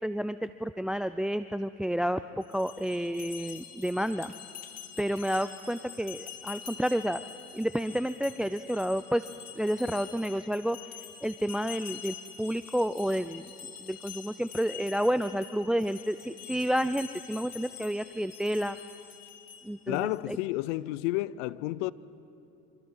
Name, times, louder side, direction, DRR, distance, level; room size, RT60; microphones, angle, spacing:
voice 1, 0.0-4.3 5.0-7.2 7.5-10.8 11.2-13.4 13.8-18.8 19.6-20.4, equal, ahead, 0.4 m, -30 dB
sound 1, 2.4-19.9, left 9 dB, 45° left, 2.6 m, -46 dB
voice 2, 19.9-21.9, left 17 dB, 80° left, 0.7 m, -31 dB
26.5 x 25.0 x 5.6 m
supercardioid pair, 85°, 35 cm